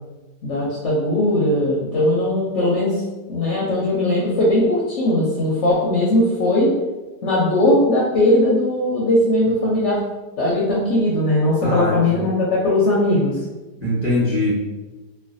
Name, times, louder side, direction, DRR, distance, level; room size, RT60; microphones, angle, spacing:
voice 1, 0.4-3.0 3.3-6.7 7.2-10.0 10.4-13.4, left 1 dB, 65° left, -5 dB, 0.7 m, -19 dB
voice 2, 11.6-12.0 13.8-14.5, left 1 dB, 20° right, -11 dB, 0.9 m, -21 dB
3.1 x 2.2 x 2.5 m, 1.2 s
omnidirectional pair, 1.7 m